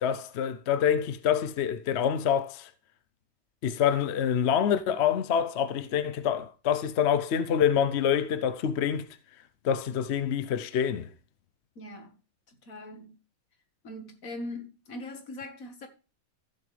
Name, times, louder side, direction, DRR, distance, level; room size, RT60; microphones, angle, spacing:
voice 1, 0.0-2.7 3.6-9.1 9.6-11.1, left 8 dB, 60° left, 0.8 m, -26 dB
voice 2, 11.8-12.2 12.5-13.2 13.8-15.9, left 1 dB, 75° left, 2.1 m, -41 dB
15.0 x 7.4 x 3.3 m
omnidirectional pair, 1.4 m